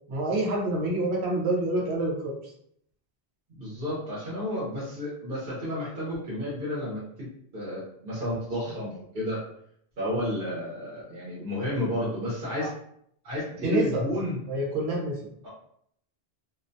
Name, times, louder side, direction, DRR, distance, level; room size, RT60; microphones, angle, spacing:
voice 1, 0.1-2.3 12.6-12.7 13.6-14.2 14.5-15.2, right 1 dB, 80° right, -2 dB, 0.9 m, -27 dB
voice 2, 3.6-9.4 10.0-12.7 13.2-14.4, left 1 dB, 60° right, -7 dB, 1.0 m, -31 dB
2.5 x 2.1 x 2.6 m, 0.69 s
omnidirectional pair, 1.1 m